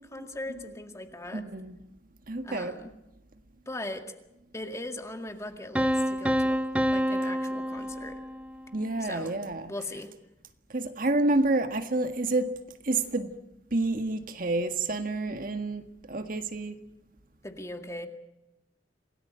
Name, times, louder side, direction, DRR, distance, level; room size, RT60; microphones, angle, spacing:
voice 1, 0.1-1.4 2.4-2.9 3.7-4.1 4.5-6.6 6.9-8.2 9.0-9.3 9.7-10.1 17.4-18.1, left 1 dB, 15° left, 2.1 m, -39 dB
voice 2, 1.3-1.8 2.3-2.7 8.7-9.7 10.7-12.5 12.8-13.3 13.7-16.7, right 2 dB, 50° right, 1.7 m, -29 dB
Piano, 5.8-8.6, equal, 5° right, 0.8 m, -27 dB
27.5 x 18.5 x 8.8 m
head